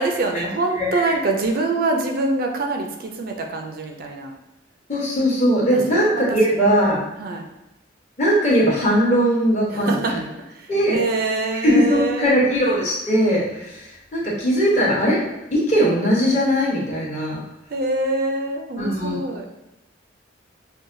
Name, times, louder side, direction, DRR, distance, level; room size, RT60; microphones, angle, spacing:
voice 1, 0.0-4.3 5.7-6.4 7.2-7.5 9.7-12.4 17.7-19.5, right 3 dB, 50° right, 3 dB, 0.4 m, -25 dB
voice 2, 4.9-7.0 8.2-10.2 10.7-11.0 11.6-15.2 15.5-17.4 18.8-19.2, equal, 35° left, -5 dB, 1.0 m, -19 dB
5.4 x 2.2 x 2.6 m, 0.91 s
head